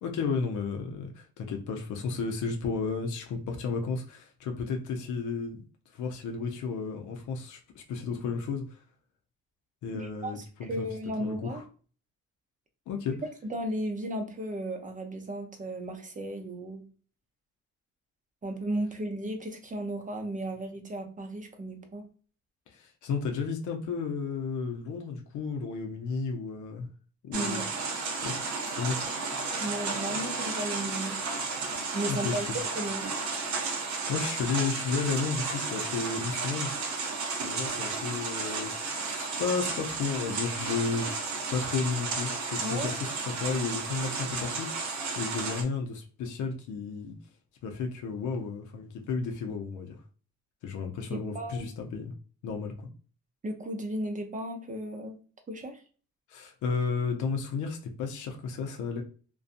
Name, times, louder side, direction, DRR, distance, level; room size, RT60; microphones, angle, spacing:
voice 1, 0.0-5.6 5.9-8.8 9.8-10.9 11.2-11.6 12.9-13.2 22.7-26.9 27.2-27.6 28.2-29.0 32.1-32.6 34.1-37.1 37.4-41.1 41.5-47.2 47.6-50.0 50.6-52.1 52.4-52.9 56.3-59.0, left 5 dB, 75° left, 3 dB, 0.6 m, -33 dB
voice 2, 9.9-11.6 13.5-16.8 18.4-22.1 27.3-27.7 29.6-31.2 31.9-33.1 42.6-42.9 51.1-51.7 53.4-55.2 55.5-55.8, right 1 dB, 25° right, 5 dB, 0.6 m, -35 dB
sound 1, 27.3-45.6, right 4 dB, 65° right, 0.8 m, -33 dB
2.5 x 2.2 x 2.5 m, 0.39 s
cardioid pair, 90°, 30 cm